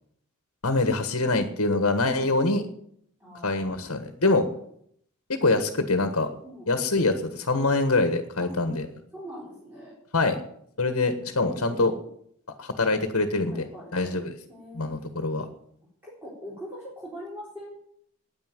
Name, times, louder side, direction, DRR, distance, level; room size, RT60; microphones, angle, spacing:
voice 1, 0.6-2.6 3.4-4.5 5.3-6.3 6.7-8.9 10.1-10.4 10.8-11.9 12.6-13.6 13.9-14.3 14.7-15.5, left 2 dB, 65° left, 8 dB, 1.5 m, -24 dB
voice 2, 3.2-3.8 4.2-4.5 6.4-6.7 8.4-8.5 9.1-9.9 11.6-12.1 13.5-14.1 14.5-14.9 16.0-17.8, equal, 10° right, -6 dB, 4.1 m, -42 dB
9.9 x 9.8 x 9.2 m, 0.68 s
head